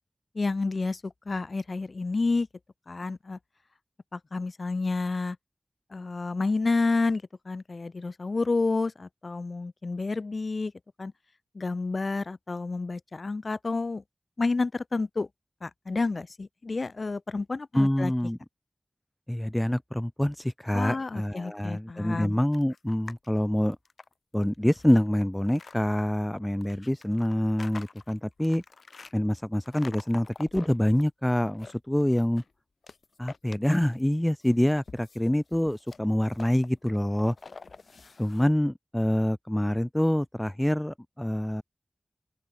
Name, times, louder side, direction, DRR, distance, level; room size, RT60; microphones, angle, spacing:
voice 1, 0.3-2.5 2.9-3.4 4.1-5.4 5.9-10.7 11.0-11.1 11.5-14.0 14.4-15.3 15.6-18.1 20.7-22.4, left 3 dB, 60° left, 0.6 m, -29 dB
voice 2, 17.7-18.4 19.3-23.8 24.3-28.6 29.1-32.4 33.2-37.4 38.2-41.6, left 1 dB, 10° left, 0.6 m, -26 dB
sound 1, 22.5-23.3 23.7-25.8 26.6-29.1 29.6-31.0 31.4-32.5 32.8-34.1 34.4-38.4, left 4 dB, 85° left, 4.2 m, -47 dB
open air
wide cardioid pair, 85°, 0 cm